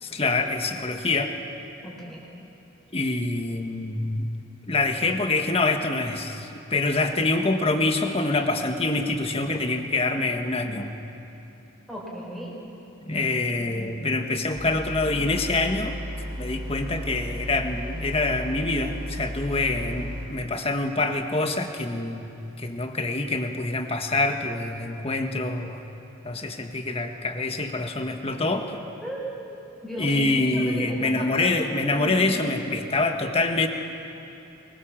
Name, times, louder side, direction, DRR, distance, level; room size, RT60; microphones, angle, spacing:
voice 1, 0.0-1.3 2.9-4.3 4.7-10.9 13.0-16.0 16.3-22.3 22.6-25.8 26.2-28.8 30.0-33.7, left 2 dB, 30° left, 5 dB, 1.6 m, -25 dB
voice 2, 1.8-2.3 11.9-12.5 29.0-29.6 29.8-32.5, equal, ahead, -4 dB, 5.0 m, -35 dB
sound 1, 14.5-20.3, equal, 20° right, 5.9 m, -34 dB
24.5 x 22.0 x 7.5 m, 2.9 s
head